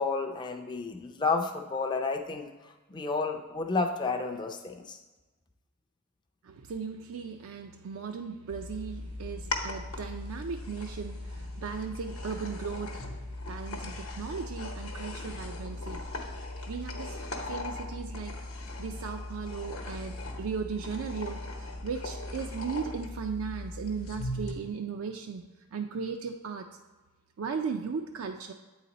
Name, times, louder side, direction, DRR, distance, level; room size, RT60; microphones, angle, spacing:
voice 1, 0.0-5.0, left 4 dB, 20° left, 4 dB, 0.4 m, -31 dB
voice 2, 6.4-13.1 13.4-16.0 16.7-18.3 18.8-25.4 25.7-26.7 27.4-28.5, right 5 dB, 70° right, 4 dB, 0.4 m, -37 dB
sound 1, 8.5-24.5, left 2 dB, 75° left, 0.9 m, -38 dB
8.4 x 4.0 x 4.1 m, 1.2 s
head